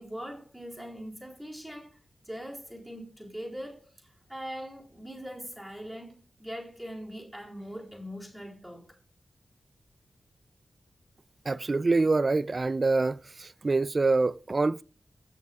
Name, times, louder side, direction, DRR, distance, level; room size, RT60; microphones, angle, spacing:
voice 1, 0.0-8.9, equal, 5° right, 4.1 m, -41 dB
voice 2, 11.5-14.8, right 3 dB, 40° right, 0.3 m, -25 dB
17.0 x 6.6 x 2.4 m
wide cardioid pair, 80°, 0 cm